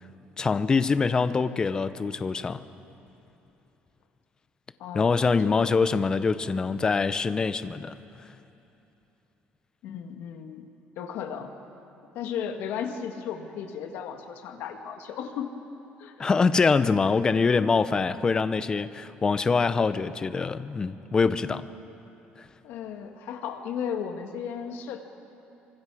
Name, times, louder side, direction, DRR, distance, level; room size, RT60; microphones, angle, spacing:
voice 1, 0.4-2.6 4.9-8.0 16.2-21.7, left 4 dB, 20° left, 13 dB, 0.6 m, -24 dB
voice 2, 4.8-5.7 9.8-10.7 11.0-11.5 12.1-15.6 16.0-16.2 22.6-25.1, left 7 dB, 75° left, 5 dB, 1.8 m, -35 dB
27.0 x 24.5 x 4.9 m, 2.9 s
cardioid pair, 150°, 4 cm